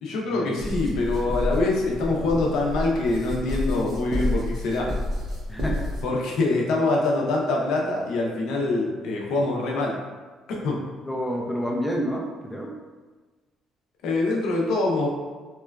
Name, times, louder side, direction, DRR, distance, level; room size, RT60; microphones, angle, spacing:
voice 1, 0.0-4.9 6.0-9.9 10.5-10.8 14.0-15.1, left 2 dB, 80° left, -2 dB, 0.5 m, -24 dB
sound 1, 0.6-6.0, left 1 dB, 60° right, 0.6 m, -29 dB
voice 2, 5.5-5.9 11.1-12.8, equal, 5° left, -1 dB, 0.3 m, -29 dB
2.9 x 2.2 x 2.2 m, 1.3 s
cardioid pair, 140°, 0 cm